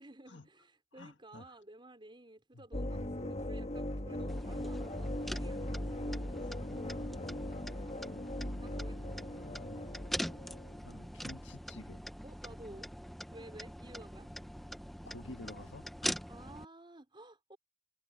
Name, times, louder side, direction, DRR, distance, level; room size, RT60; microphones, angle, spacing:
voice 1, 0.0-6.5 8.6-9.3 12.2-12.9 13.3-14.3 16.3-17.6, right 1 dB, 25° right, 4.6 m, -54 dB
voice 2, 1.0-1.6 2.5-2.6 6.4-6.5 6.9-7.5 9.2-9.9 10.8-12.0 15.1-16.1, left 2 dB, 70° left, 1.8 m, -51 dB
sound 1, 2.7-10.8, left 1 dB, 35° left, 1.7 m, -39 dB
sound 2, 4.3-16.6, equal, ahead, 0.6 m, -43 dB
head